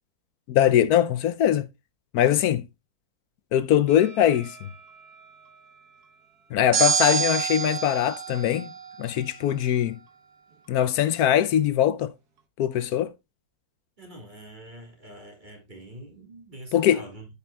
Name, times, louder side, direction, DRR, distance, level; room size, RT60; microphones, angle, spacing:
voice 1, 0.5-1.7 2.1-2.7 3.5-4.7 6.5-8.7 9.0-10.0 10.7-12.1 12.6-13.1 16.7-17.0, left 11 dB, 80° left, 1.1 m, -22 dB
sound 1, 3.9-4.8 6.7-9.3, right 7 dB, 85° right, 1.9 m, -28 dB
voice 2, 14.0-17.3, right 1 dB, 30° right, 2.4 m, -44 dB
13.0 x 5.5 x 2.3 m
omnidirectional pair, 1.6 m